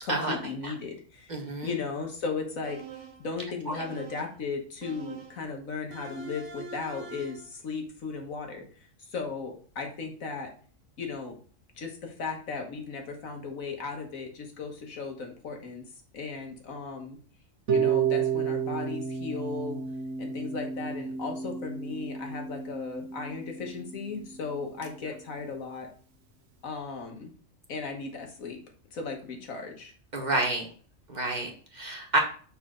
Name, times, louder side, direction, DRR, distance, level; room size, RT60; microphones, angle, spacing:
voice 1, 0.0-1.3 1.6-8.7 9.1-10.5 11.0-11.3 11.8-15.8 16.1-17.2 17.7-19.8 20.2-25.9 26.6-27.3 27.7-28.6 28.9-29.9, left 4 dB, 85° left, 2 dB, 1.7 m, -36 dB
voice 2, 1.3-1.7 3.7-3.8 30.1-30.7 31.1-32.2, right 2 dB, 35° right, 1 dB, 1.2 m, -29 dB
sound 1, 2.6-3.3 3.7-4.4 4.8-5.5 5.9-7.5, right 5 dB, 65° right, 1.2 m, -44 dB
Harp, 17.7-23.7, right 6 dB, 90° right, 1.3 m, -31 dB
5.8 x 4.3 x 3.7 m, 0.43 s
omnidirectional pair, 1.4 m